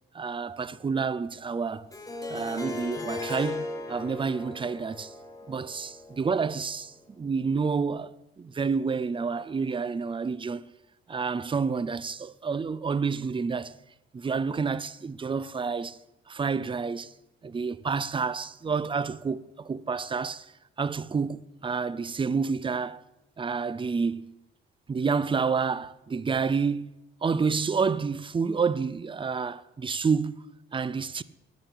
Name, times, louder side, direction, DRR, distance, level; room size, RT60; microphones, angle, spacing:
voice 1, 0.1-1.9 2.3-5.1 5.5-10.7 11.1-13.7 14.1-16.0 16.3-17.1 17.4-20.5 20.8-23.0 23.4-24.3 24.9-26.9 27.2-30.4 30.7-31.2, right 5 dB, 25° right, 0.6 m, -29 dB
Harp, 1.9-6.9, left 3 dB, 15° left, 2.3 m, -37 dB
10.5 x 9.8 x 8.6 m
cardioid pair, 90°, 20 cm